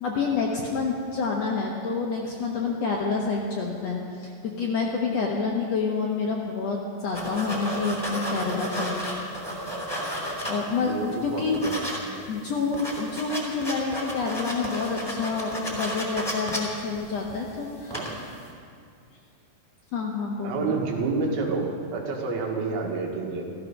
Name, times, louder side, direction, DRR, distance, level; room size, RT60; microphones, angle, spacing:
voice 1, 0.0-9.0 10.4-11.6 12.3-18.0 19.9-20.7, left 4 dB, 65° left, -1 dB, 1.6 m, -28 dB
sound 1, 7.1-10.9 11.3-12.0 12.3-12.4 12.6-17.5 17.8-18.3, equal, 5° left, 2.3 m, -32 dB
voice 2, 10.8-11.8 12.2-12.4 17.9-18.1 20.4-23.5, right 4 dB, 75° right, 0 dB, 3.6 m, -29 dB
14.5 x 14.5 x 6.0 m, 2.4 s
omnidirectional pair, 4.5 m